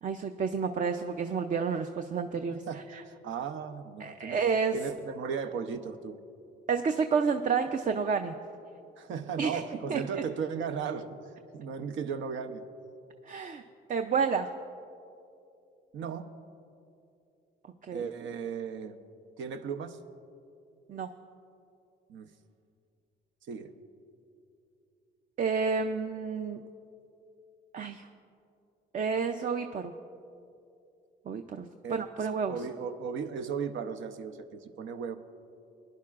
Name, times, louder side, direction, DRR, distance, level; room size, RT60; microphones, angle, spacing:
voice 1, 0.0-3.0 4.0-4.8 6.7-8.3 9.4-9.6 9.9-10.0 13.3-13.6 13.9-14.5 17.9-18.1 20.9-21.1 25.4-26.6 27.7-28.0 28.9-29.9 31.3-32.6, right 5 dB, 40° right, 6 dB, 0.5 m, -30 dB
voice 2, 2.5-4.4 4.7-6.2 9.0-11.1 11.5-12.6 15.9-16.3 17.9-19.0 19.4-20.0 22.1-22.3 23.5-23.7 31.8-35.2, right 6 dB, 75° right, 7 dB, 0.7 m, -36 dB
20.5 x 10.5 x 2.4 m, 2.6 s
cardioid pair, 90°, 20 cm